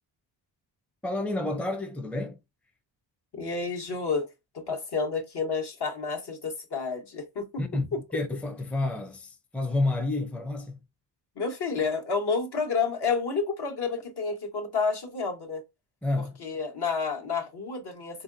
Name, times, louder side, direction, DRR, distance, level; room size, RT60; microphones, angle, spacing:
voice 1, 1.0-2.4 7.6-7.9 8.1-10.8 16.0-16.4, left 2 dB, 5° left, 0.7 m, -29 dB
voice 2, 3.3-4.3 4.5-8.0 11.4-15.6 16.4-18.2, left 4 dB, 55° left, 1.3 m, -30 dB
3.7 x 2.6 x 2.6 m
supercardioid pair, 55°, 48 cm